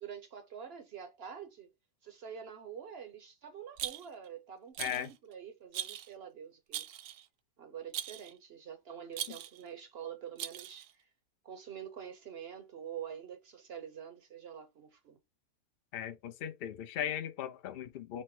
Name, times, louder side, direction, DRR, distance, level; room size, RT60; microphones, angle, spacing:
voice 1, 0.0-1.7 2.0-6.9 7.6-11.0 11.4-15.2, right 8 dB, 55° right, 0.7 m, -46 dB
Rattle, 3.8-4.3 4.7-5.1 5.7-6.1 6.7-7.3 7.9-8.3 9.1-9.6 10.4-10.9, right 12 dB, 85° right, 1.1 m, -40 dB
voice 2, 4.8-5.1 9.3-9.4 15.9-18.2, left 10 dB, 75° left, 0.5 m, -38 dB
4.2 x 2.1 x 4.5 m
omnidirectional pair, 1.6 m